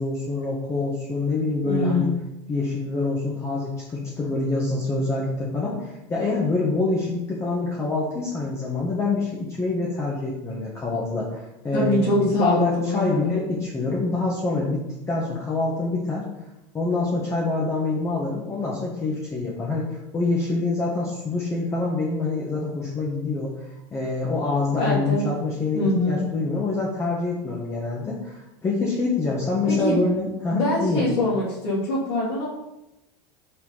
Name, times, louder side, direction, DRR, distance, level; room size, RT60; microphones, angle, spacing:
voice 1, 0.0-2.1 2.5-16.3 16.7-19.9 20.1-23.5 23.9-31.0, left 3 dB, 20° left, -4 dB, 1.4 m, -26 dB
voice 2, 1.6-2.2 11.7-13.4 24.8-25.3 25.7-26.2 29.7-30.0 30.5-32.5, left 1 dB, 85° left, -9 dB, 2.7 m, -24 dB
5.7 x 4.3 x 5.6 m, 0.93 s
supercardioid pair, 130°, 13 cm